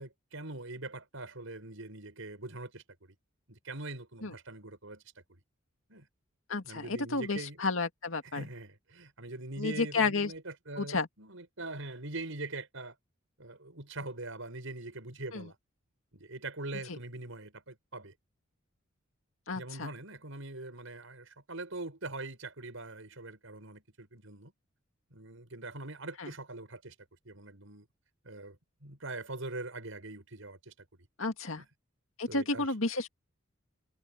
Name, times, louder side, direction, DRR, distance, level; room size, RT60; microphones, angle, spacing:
voice 1, 0.0-3.1 3.5-5.0 5.3-5.4 5.9-6.1 6.6-7.6 8.2-12.9 13.4-15.6 16.1-18.1 19.5-24.5 25.1-27.0 27.2-27.9 28.2-31.1 31.6-31.7 32.3-32.7, right 2 dB, 75° right, 5.7 m, -43 dB
voice 2, 6.5-8.5 9.6-10.3 10.8-11.1 15.3-15.5 16.9-17.0 19.5-19.9 26.2-26.3 31.2-31.6 32.2-33.1, left 3 dB, 80° left, 2.1 m, -31 dB
head